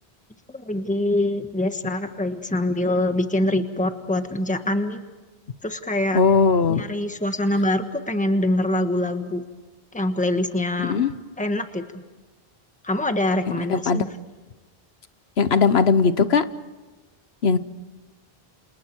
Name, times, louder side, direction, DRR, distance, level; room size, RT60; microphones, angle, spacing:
voice 1, 0.5-5.0 5.6-6.2 6.7-9.4 9.9-11.0 11.4-12.0 12.8-14.1, left 1 dB, 5° left, 7 dB, 1.4 m, -24 dB
voice 2, 6.1-6.8 10.9-11.1 13.6-14.0 15.4-16.4 17.4-17.6, left 5 dB, 75° left, 13 dB, 1.3 m, -19 dB
28.5 x 28.0 x 4.7 m, 1.3 s
omnidirectional pair, 1.1 m